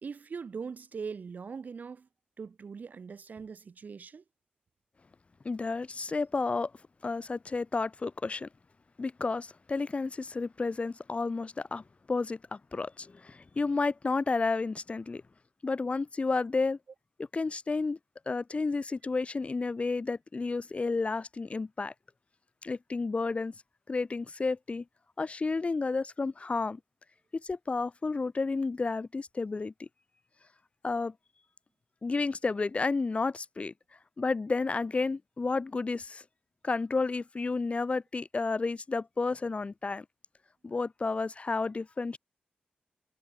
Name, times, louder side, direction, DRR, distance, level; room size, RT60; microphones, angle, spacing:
voice 1, 0.0-2.1 2.4-4.2, right 5 dB, 55° right, 0.4 m, -41 dB
voice 2, 5.4-6.7 7.0-8.5 9.0-15.2 15.6-16.8 17.3-18.0 18.3-21.9 22.6-23.5 23.9-24.8 25.2-26.8 27.3-29.9 30.8-31.1 32.0-33.7 34.2-36.2 36.6-40.0 40.6-42.2, left 3 dB, 40° left, 0.5 m, -31 dB
cardioid pair, 65°, 3 cm